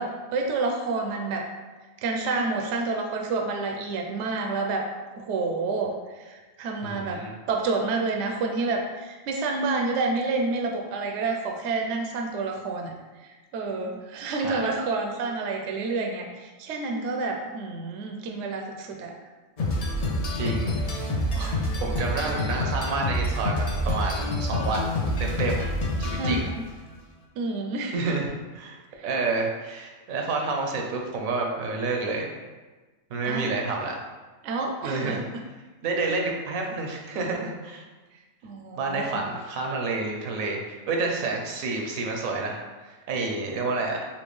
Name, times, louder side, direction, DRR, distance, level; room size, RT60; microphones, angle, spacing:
voice 1, 0.0-1.5 2.0-4.9 5.2-7.2 7.5-12.9 13.2-19.1 26.1-26.6 27.4-28.1 29.0-29.1 33.2-33.5 34.4-35.4 38.4-39.3, right 3 dB, 65° right, 2 dB, 0.8 m, -29 dB
voice 2, 6.8-7.3 14.4-14.7 20.4-24.9 25.2-25.7 26.0-26.5 27.9-32.3 33.1-34.0 34.8-35.2 35.8-37.8 38.8-44.0, right 3 dB, 85° right, 1 dB, 1.1 m, -29 dB
sound 1, 19.6-26.7, left 1 dB, 60° left, 0.4 m, -27 dB
4.2 x 2.9 x 3.2 m, 1.3 s
omnidirectional pair, 1.4 m